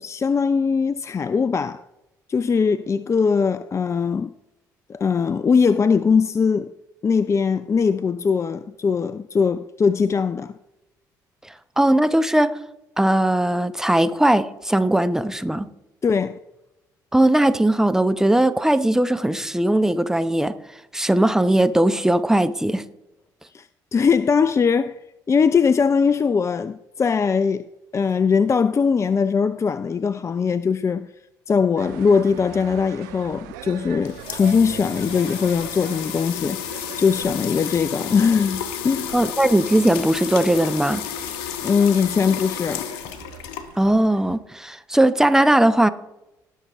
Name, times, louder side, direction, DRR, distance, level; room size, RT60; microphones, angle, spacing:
voice 1, 0.0-1.8 2.3-4.3 4.9-6.7 7.0-10.5 16.0-16.4 23.5-23.7 23.9-25.0 25.3-27.7 27.9-31.1 31.5-39.2 41.6-42.9, left 5 dB, 30° left, 0.4 m, -21 dB
voice 2, 11.8-12.6 13.0-15.7 17.1-20.6 20.9-22.8 39.1-41.1 43.8-45.9, right 1 dB, 5° right, 0.9 m, -19 dB
sound 1, 31.8-44.4, right 10 dB, 75° right, 0.8 m, -42 dB
sound 2, 33.8-44.1, left 9 dB, 75° left, 0.9 m, -32 dB
19.0 x 6.6 x 3.6 m
hypercardioid pair, 50°, 10 cm